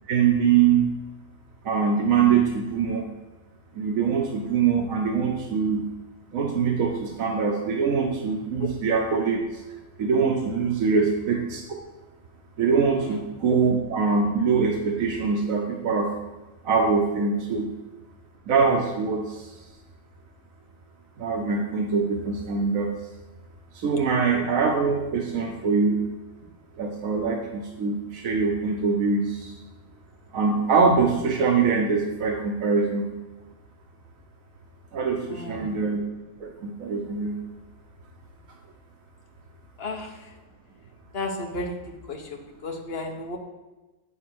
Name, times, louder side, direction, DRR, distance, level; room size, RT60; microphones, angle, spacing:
voice 1, 0.1-0.9 1.6-3.1 3.7-5.8 6.3-9.6 10.0-11.6 12.6-16.1 16.6-17.7 18.5-19.6 21.2-22.9 23.7-26.0 26.7-29.5 30.3-33.0 34.9-36.0 36.4-37.3, right 5 dB, 90° right, 0 dB, 1.3 m, -23 dB
voice 2, 35.3-35.7 39.8-40.1 41.1-41.8 42.1-42.2 42.6-43.4, left 2 dB, 50° left, 2 dB, 1.3 m, -32 dB
8.7 x 6.2 x 4.6 m, 1.1 s
omnidirectional pair, 1.4 m